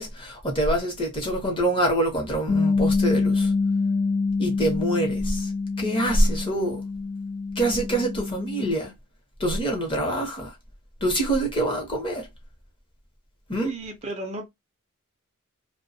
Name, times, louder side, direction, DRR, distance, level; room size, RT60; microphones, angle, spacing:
voice 1, 0.0-3.5 4.4-5.5 5.8-6.8 7.6-8.9 9.4-10.5 11.0-12.3 13.5-13.7, right 1 dB, 25° left, 0.9 m, -25 dB
Bass guitar, 2.5-8.7, left 4 dB, 65° left, 0.7 m, -26 dB
voice 2, 13.6-14.5, right 2 dB, 30° right, 0.5 m, -33 dB
2.2 x 2.2 x 2.6 m
head